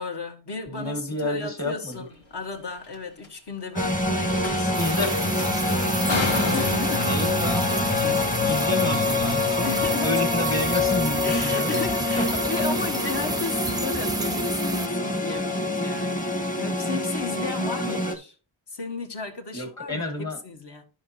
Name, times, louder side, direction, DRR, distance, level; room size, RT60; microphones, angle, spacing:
voice 1, 0.0-5.8 6.3-7.2 9.6-10.1 11.2-18.3 18.7-20.8, left 4 dB, 60° left, 1.6 m, -35 dB
voice 2, 0.7-2.0 4.8-5.1 7.0-9.7 10.0-11.8 12.2-12.3 17.8-18.0 19.5-20.4, left 1 dB, 35° left, 2.1 m, -30 dB
sound 1, 1.9-2.0 2.7-3.0 3.2-3.3 4.4-8.7, left 3 dB, 80° left, 1.9 m, -33 dB
sound 2, 3.8-18.2, left 2 dB, 15° left, 1.1 m, -25 dB
sound 3, 4.7-14.9, right 2 dB, 10° right, 0.4 m, -32 dB
12.0 x 5.1 x 2.8 m
cardioid pair, 70°, 46 cm